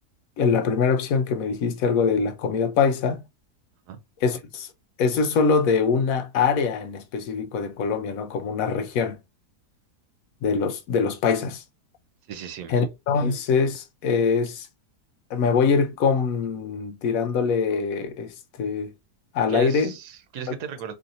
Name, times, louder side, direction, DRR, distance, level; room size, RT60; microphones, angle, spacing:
voice 1, 0.4-3.2 4.2-4.7 5.0-9.2 10.4-11.6 12.7-14.7 15.3-18.9 19.3-19.9, left 5 dB, 70° left, 0.9 m, -23 dB
voice 2, 12.3-12.8 19.5-20.9, right 8 dB, 75° right, 1.2 m, -36 dB
3.1 x 2.7 x 2.5 m
omnidirectional pair, 1.8 m